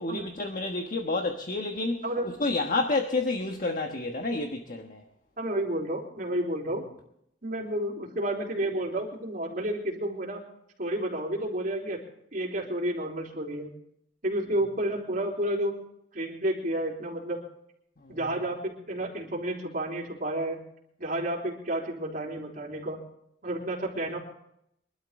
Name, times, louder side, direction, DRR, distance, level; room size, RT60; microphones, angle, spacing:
voice 1, 0.0-2.0 2.4-5.0 18.0-18.2, left 2 dB, 50° left, 1.4 m, -29 dB
voice 2, 5.4-6.8 7.4-10.4 10.8-12.0 12.3-13.7 14.2-15.8 16.1-17.4 18.1-20.6 21.0-23.0 23.4-24.2, right 1 dB, 50° right, 3.6 m, -31 dB
24.0 x 12.0 x 3.7 m
head